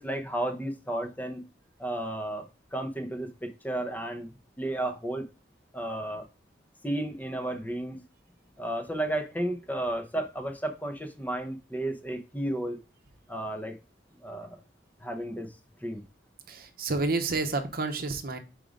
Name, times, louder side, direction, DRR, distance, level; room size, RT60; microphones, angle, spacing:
voice 1, 0.0-1.5 1.8-4.3 4.6-5.2 5.7-6.3 6.8-8.0 8.6-12.8 13.3-13.7 14.2-14.6 15.0-15.5 15.8-16.0, right 1 dB, 10° left, 0.7 m, -33 dB
voice 2, 16.5-18.4, right 3 dB, 50° right, 0.8 m, -29 dB
5.0 x 3.7 x 5.1 m
head